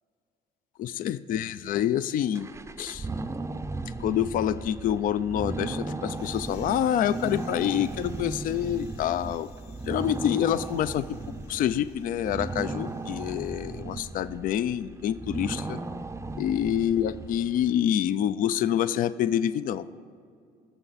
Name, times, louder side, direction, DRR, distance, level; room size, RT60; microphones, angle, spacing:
voice 1, 0.8-2.5 2.8-3.1 4.0-9.5 9.9-11.1 11.5-15.8 16.4-19.9, left 10 dB, 55° left, 14 dB, 0.4 m, -27 dB
sound 1, 2.3-17.8, right 3 dB, 15° right, 0.6 m, -36 dB
sound 2, 6.1-13.4, left 6 dB, 75° left, 3.1 m, -58 dB
20.0 x 6.8 x 4.1 m, 2.3 s
cardioid pair, 110°, 17 cm